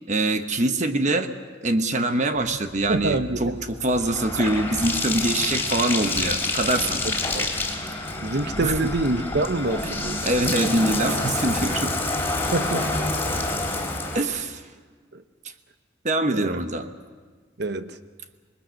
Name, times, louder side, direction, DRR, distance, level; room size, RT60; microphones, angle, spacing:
voice 1, 0.1-1.3 1.6-7.0 8.6-8.7 9.8-9.9 10.2-11.9 14.1-14.6 16.0-16.9, right 2 dB, 40° right, 8 dB, 1.1 m, -24 dB
Bathtub (filling or washing), 2.9-14.2, left 2 dB, 15° left, 3.8 m, -27 dB
voice 2, 2.9-3.6 7.3-7.5 8.2-10.3 12.5-13.0 15.1-15.2 16.3-16.6 17.6-18.0, right 2 dB, 60° right, 10 dB, 1.0 m, -26 dB
26.5 x 20.5 x 6.5 m, 1.5 s
head